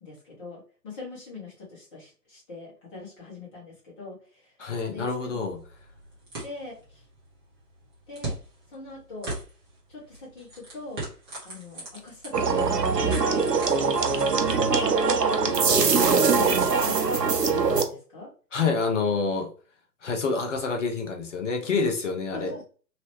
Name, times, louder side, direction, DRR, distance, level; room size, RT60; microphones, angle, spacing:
voice 1, 0.0-5.4 6.4-7.0 8.1-8.3 8.7-9.3 9.9-11.0 11.4-13.5 14.2-17.0 17.4-18.3 22.3-22.6, left 3 dB, 20° left, -6 dB, 1.5 m, -41 dB
voice 2, 4.6-5.6 18.5-19.5 20.0-22.5, left 4 dB, 45° left, 4 dB, 0.9 m, -27 dB
sound 1, 5.0-15.3, right 2 dB, 15° right, 0.8 m, -41 dB
sound 2, 12.3-17.8, right 5 dB, 75° right, 0.7 m, -22 dB
3.0 x 2.8 x 3.1 m, 0.40 s
figure-of-eight pair, 130°, 49 cm